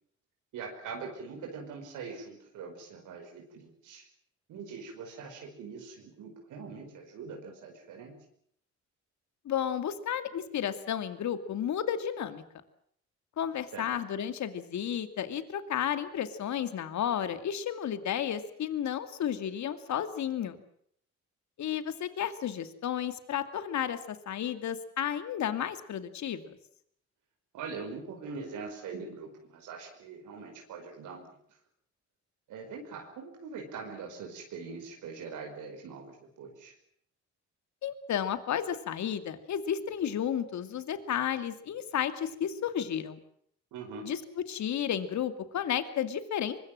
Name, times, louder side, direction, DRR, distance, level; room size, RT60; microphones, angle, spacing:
voice 1, 0.5-4.1 4.5-8.2 13.7-13.9 27.5-31.4 32.5-36.8 43.7-44.1, right 5 dB, 85° right, 2 dB, 5.2 m, -42 dB
voice 2, 9.4-12.4 13.4-20.6 21.6-26.6 37.8-43.2 44.0-44.2 44.5-46.6, left 9 dB, 70° left, 11 dB, 2.4 m, -32 dB
23.5 x 21.5 x 7.6 m, 0.67 s
cardioid pair, 90°, 30 cm